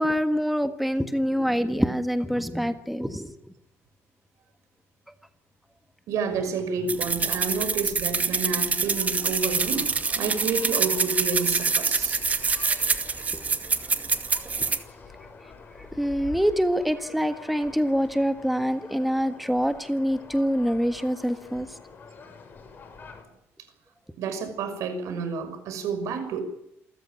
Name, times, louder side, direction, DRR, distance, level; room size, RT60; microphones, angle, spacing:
voice 1, 0.0-3.5 15.8-21.8, equal, ahead, 8 dB, 1.6 m, -25 dB
voice 2, 6.1-12.2 24.2-26.4, right 5 dB, 80° right, 9 dB, 6.1 m, -30 dB
sound 1, 6.9-14.8, right 4 dB, 30° right, 2.3 m, -26 dB
sound 2, 9.4-23.2, left 5 dB, 40° left, 6.3 m, -47 dB
28.0 x 15.0 x 9.3 m, 0.78 s
cardioid pair, 120°, 5 cm